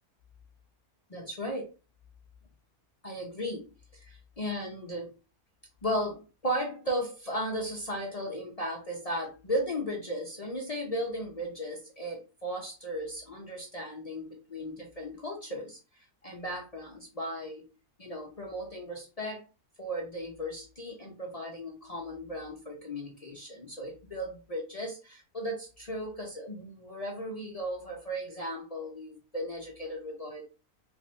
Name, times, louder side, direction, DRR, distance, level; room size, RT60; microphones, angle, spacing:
voice 1, 1.1-1.7 3.0-5.1 5.8-17.7 18.0-19.5 19.8-30.4, equal, 45° left, 0 dB, 0.4 m, -36 dB
3.5 x 2.6 x 3.3 m, 0.30 s
omnidirectional pair, 1.6 m